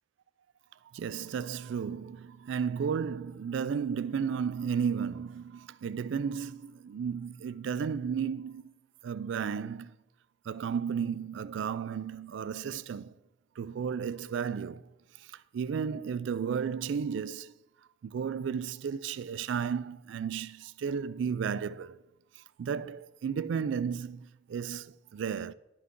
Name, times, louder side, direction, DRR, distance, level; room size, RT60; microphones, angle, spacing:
voice 1, 0.9-8.7 9.0-10.0 10.5-13.1 13.6-14.8 15.3-17.5 18.0-22.0 22.6-25.5, right 7 dB, 80° right, 0.3 m, -33 dB
11.0 x 5.8 x 3.7 m
head